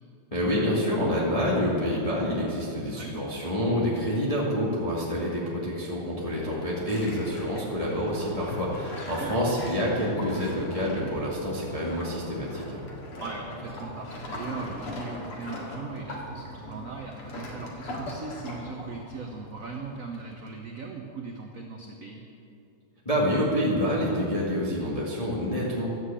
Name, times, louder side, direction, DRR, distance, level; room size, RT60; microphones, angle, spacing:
voice 1, 0.3-12.8 23.1-25.9, equal, 15° left, -6 dB, 1.8 m, -27 dB
voice 2, 2.8-3.2 8.9-9.4 13.2-22.2, right 4 dB, 55° right, 2 dB, 1.0 m, -39 dB
sound 1, 6.3-20.5, left 1 dB, 85° left, 2.9 m, -40 dB
11.5 x 7.9 x 8.3 m, 2.8 s
omnidirectional pair, 2.4 m